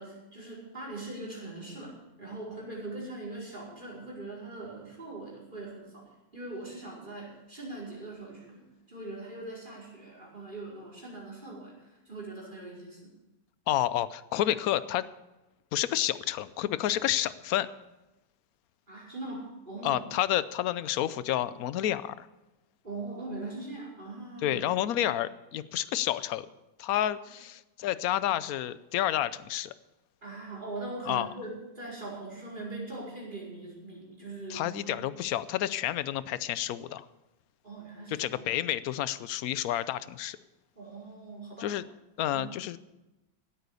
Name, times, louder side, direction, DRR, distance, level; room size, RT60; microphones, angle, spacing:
voice 1, 0.0-13.1 18.9-20.0 22.8-24.6 30.2-35.0 37.6-38.4 40.8-41.7 42.3-42.5, right 2 dB, 25° right, -4 dB, 5.2 m, -41 dB
voice 2, 13.7-15.1 15.7-17.7 19.8-22.3 24.4-26.5 26.8-29.7 31.1-31.3 34.5-37.1 38.1-40.4 41.6-41.9 42.2-42.8, left 12 dB, 65° left, 16 dB, 0.9 m, -30 dB
16.0 x 9.1 x 6.9 m, 1.0 s
omnidirectional pair, 2.0 m